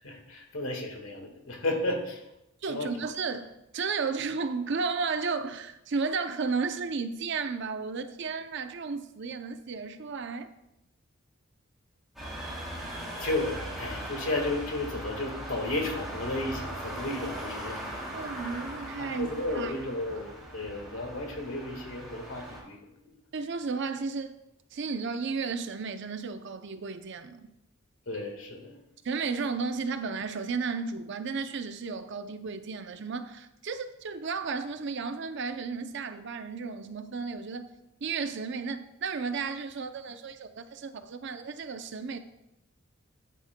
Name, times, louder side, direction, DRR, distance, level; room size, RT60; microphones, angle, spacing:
voice 1, 0.0-2.2 2.7-2.9 13.2-17.8 19.0-23.1 28.1-28.8, left 2 dB, 75° left, 1.6 m, -33 dB
voice 2, 2.6-10.5 18.1-19.3 19.5-19.7 20.1-20.2 23.3-24.4 24.7-27.5 29.0-37.7 38.0-42.2, right 4 dB, 60° right, 0.5 m, -33 dB
sound 1, 12.2-22.6, right 1 dB, ahead, 2.7 m, -39 dB
9.9 x 8.9 x 2.2 m
head